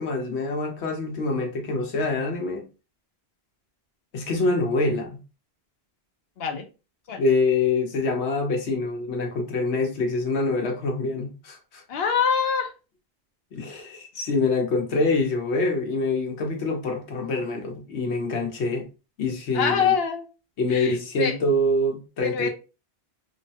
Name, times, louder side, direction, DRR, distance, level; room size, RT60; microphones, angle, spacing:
voice 1, 0.0-2.6 4.1-5.2 7.2-11.8 13.5-18.9 19.2-19.9 20.6-22.5, left 2 dB, 90° left, 1.1 m, -25 dB
voice 2, 11.9-12.7 19.5-20.3 20.7-21.4 22.2-22.5, left 6 dB, 70° left, 0.8 m, -24 dB
3.0 x 2.1 x 2.7 m
omnidirectional pair, 1.1 m